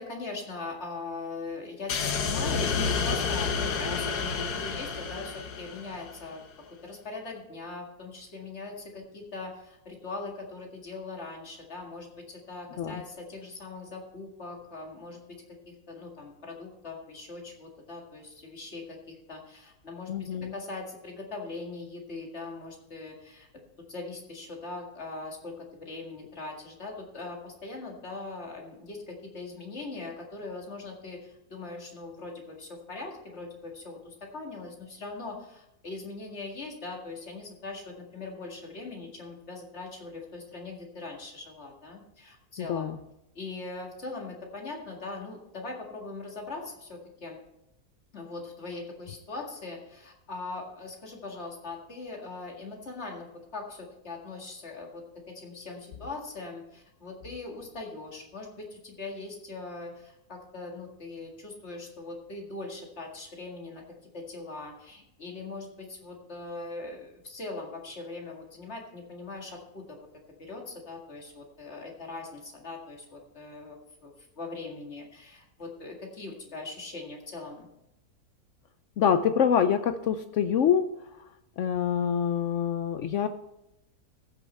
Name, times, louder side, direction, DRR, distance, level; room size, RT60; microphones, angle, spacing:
voice 1, 0.0-6.4 6.8-15.4 15.7-23.5 23.9-25.5 25.8-42.9 43.4-47.4 48.1-53.3 53.5-63.8 64.1-70.0 70.4-77.7, left 3 dB, 45° left, 0 dB, 2.2 m, -41 dB
sound 1, 1.9-6.3, left 5 dB, 85° left, 1.5 m, -30 dB
voice 2, 20.1-20.5 42.6-43.0 79.0-80.9 81.6-83.3, left 8 dB, 70° left, 9 dB, 0.7 m, -25 dB
14.5 x 6.5 x 4.2 m, 0.86 s
omnidirectional pair, 1.7 m